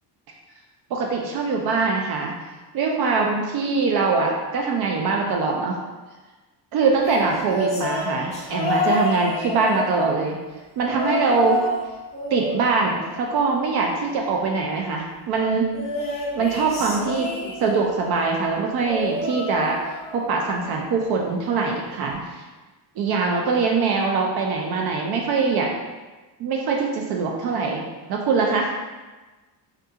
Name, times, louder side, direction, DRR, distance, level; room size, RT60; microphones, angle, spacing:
voice 1, 0.9-2.4 2.7-5.8 6.7-10.4 10.8-11.6 12.3-15.7 16.4-17.3 17.6-19.8 20.1-22.5 23.0-25.7 26.4-27.8 28.1-28.7, right 4 dB, 65° right, 0 dB, 0.5 m, -23 dB
sound 1, 7.0-10.3 10.8-11.8 12.1-13.7 15.7-17.9 18.8-20.3 20.6-21.0 22.1-22.2, left 1 dB, 15° left, 0.4 m, -29 dB
3.6 x 2.3 x 2.7 m, 1.2 s
cardioid pair, 175°, 42 cm